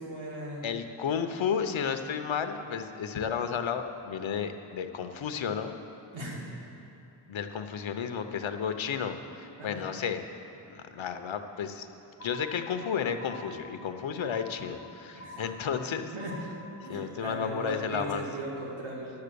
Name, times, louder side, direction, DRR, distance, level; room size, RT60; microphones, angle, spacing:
voice 1, 0.0-0.7 6.1-6.4 9.6-9.8 15.1-15.4 16.0-16.3 16.8-19.1, right 1 dB, 90° right, -4 dB, 2.3 m, -38 dB
voice 2, 0.6-5.8 7.3-10.2 10.7-11.9 12.2-16.1 16.9-18.2, left 7 dB, 80° left, 7 dB, 0.8 m, -32 dB
sound 1, 12.2-12.9 13.2-13.9 14.2-14.9 15.2-15.9 16.2-16.9, left 1 dB, 35° left, 0.8 m, -46 dB
10.5 x 7.0 x 6.8 m, 2.8 s
wide cardioid pair, 105°, 46 cm